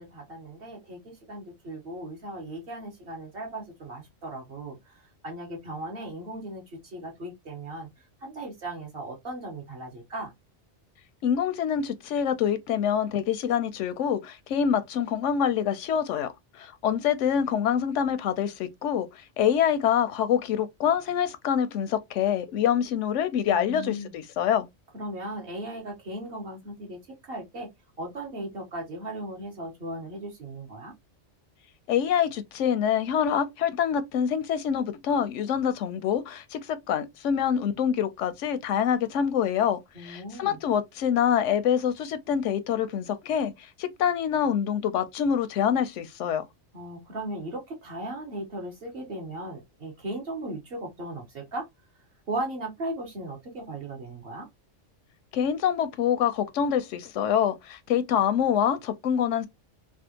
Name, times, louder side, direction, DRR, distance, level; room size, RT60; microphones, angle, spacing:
voice 1, 0.0-7.9 8.2-10.3 23.5-24.1 24.9-27.7 28.0-30.9 39.9-40.6 46.7-51.7 52.3-54.5, right 1 dB, 55° right, 1.4 m, -37 dB
voice 2, 11.2-24.7 31.9-46.4 55.3-59.5, left 8 dB, 85° left, 0.9 m, -26 dB
3.4 x 2.4 x 2.8 m
omnidirectional pair, 1.2 m